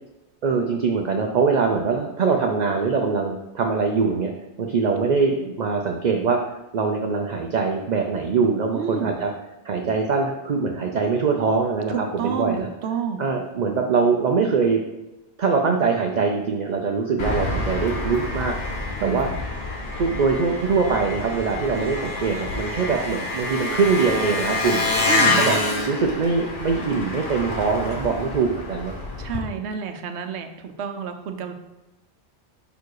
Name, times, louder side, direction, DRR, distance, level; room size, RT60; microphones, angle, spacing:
voice 1, 0.4-4.3 4.6-9.3 9.6-12.7 13.2-14.8 15.4-18.5 19.0-19.3 20.0-24.8 25.2-25.6 25.9-28.9, right 5 dB, 50° right, 2 dB, 0.6 m, -23 dB
voice 2, 8.7-9.2 11.9-13.2 19.0-19.3 25.1-25.4 29.2-31.5, right 7 dB, 75° right, 7 dB, 1.0 m, -29 dB
Engine, 17.2-29.4, left 2 dB, 50° left, 1.1 m, -27 dB
5.5 x 4.6 x 4.7 m, 1.0 s
omnidirectional pair, 1.2 m